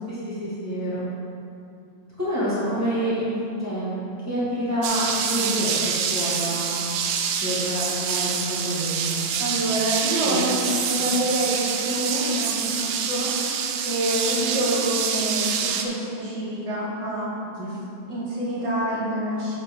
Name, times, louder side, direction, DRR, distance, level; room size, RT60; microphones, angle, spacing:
voice 1, 0.1-1.0 2.2-3.3 3.6-6.8 7.4-9.3 10.2-10.4 10.9-11.1 17.6-17.7, equal, 10° right, -10 dB, 0.7 m, -28 dB
sound 1, 4.8-15.8, right 7 dB, 90° right, 1.6 m, -26 dB
voice 2, 9.4-13.3 13.8-17.3 18.1-19.5, right 1 dB, 30° right, -9 dB, 1.3 m, -27 dB
7.4 x 7.3 x 3.7 m, 2.6 s
omnidirectional pair, 4.0 m